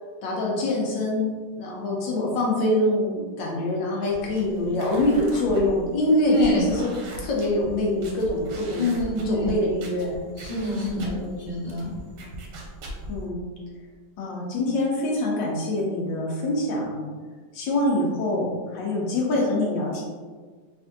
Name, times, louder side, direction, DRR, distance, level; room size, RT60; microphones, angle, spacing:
voice 1, 0.2-6.9 7.2-8.9 9.3-10.2 11.0-11.2 13.1-13.5 14.2-17.1 17.5-20.0, left 1 dB, 75° left, -3 dB, 1.4 m, -24 dB
sound 1, 4.1-13.3, right 1 dB, 70° right, 1.2 m, -40 dB
voice 2, 6.3-6.7 8.8-9.5 10.4-11.9, left 2 dB, 25° right, -11 dB, 1.1 m, -27 dB
3.4 x 3.3 x 2.6 m, 1.5 s
omnidirectional pair, 2.1 m